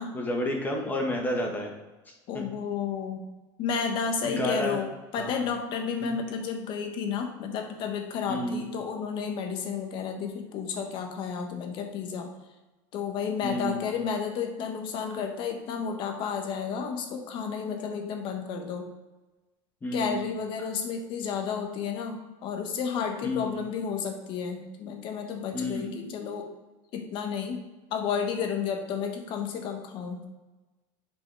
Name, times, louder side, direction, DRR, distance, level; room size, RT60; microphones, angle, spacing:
voice 1, 0.1-1.7 2.3-2.4 4.2-4.8 5.2-5.3 6.0-6.1 8.3-8.6 13.4-13.8 19.8-20.2 23.2-23.6 25.5-25.9, left 1 dB, 15° left, 1 dB, 1.5 m, -30 dB
voice 2, 2.3-3.3 3.6-12.3 12.9-18.9 19.9-26.4 26.9-27.6 27.9-30.2, left 6 dB, 50° left, 4 dB, 1.3 m, -32 dB
9.4 x 5.2 x 3.4 m, 1.1 s
supercardioid pair, 135°, 11 cm